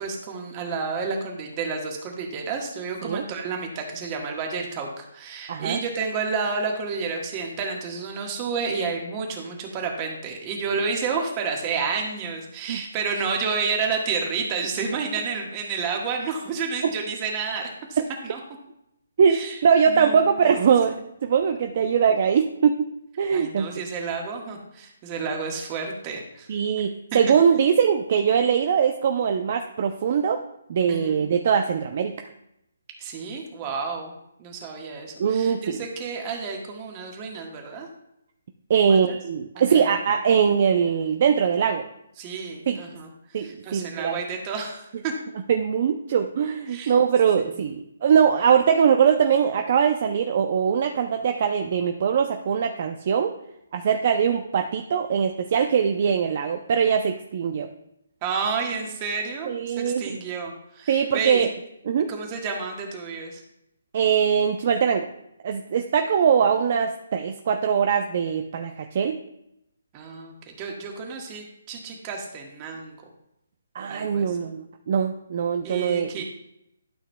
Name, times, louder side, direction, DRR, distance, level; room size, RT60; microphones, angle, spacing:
voice 1, 0.0-18.4 19.3-19.6 19.9-20.8 23.3-26.5 27.1-27.3 30.9-31.2 33.0-34.1 34.4-37.9 38.8-39.2 39.6-40.0 42.2-45.1 46.7-46.9 47.4-47.5 58.2-61.5 61.9-63.4 69.9-72.9 73.9-74.4 75.6-76.2, right 5 dB, 25° right, 1 dB, 1.5 m, -30 dB
voice 2, 5.5-5.8 12.7-12.8 19.2-22.7 23.2-23.7 26.5-30.4 30.7-32.1 35.2-35.8 38.7-41.8 42.7-42.8 43.3-44.2 45.5-53.3 53.7-57.7 59.5-60.0 60.9-61.5 61.9-62.1 63.9-65.1 65.4-69.1 73.7-76.2, right 7 dB, 45° right, 6 dB, 0.5 m, -22 dB
12.0 x 5.8 x 2.2 m, 0.81 s
figure-of-eight pair, 145°, 0 cm